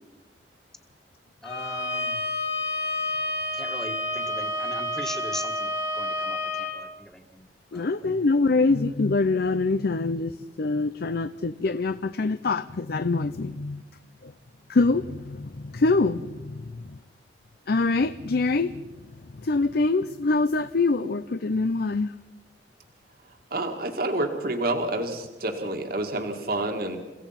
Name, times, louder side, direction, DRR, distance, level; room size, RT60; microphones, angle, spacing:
Bowed string instrument, 1.4-6.8, left 1 dB, 85° left, 4.7 m, -29 dB
voice 1, 1.4-2.2 3.5-7.5 7.7-8.1, equal, 5° left, 6 dB, 1.7 m, -40 dB
voice 2, 7.7-13.8 14.2-14.3 14.7-16.8 17.7-18.8 19.4-22.1, left 3 dB, 60° left, 13 dB, 0.6 m, -24 dB
voice 3, 23.5-27.0, right 2 dB, 55° right, 5 dB, 2.0 m, -28 dB
29.0 x 16.0 x 5.8 m, 1.2 s
head